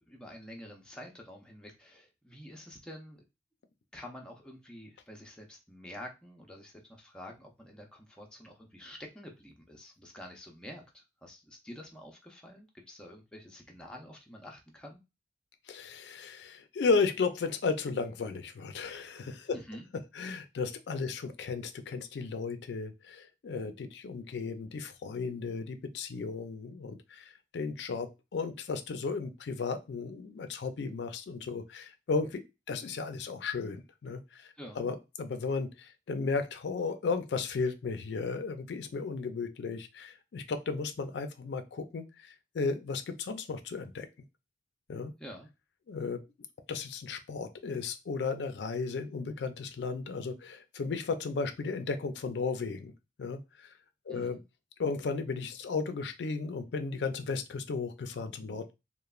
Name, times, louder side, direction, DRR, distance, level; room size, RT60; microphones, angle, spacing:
voice 1, 0.1-3.2 3.9-15.0 19.5-19.9 34.6-34.8 45.2-45.5 54.1-54.4, equal, 5° left, 0 dB, 0.4 m, -48 dB
voice 2, 15.7-19.6 20.1-34.5 34.8-44.1 44.9-45.1 45.9-46.2 46.7-52.9 53.2-53.7 54.1-54.4 54.8-58.7, left 4 dB, 85° left, 8 dB, 0.4 m, -34 dB
3.0 x 2.1 x 2.3 m, 0.25 s
head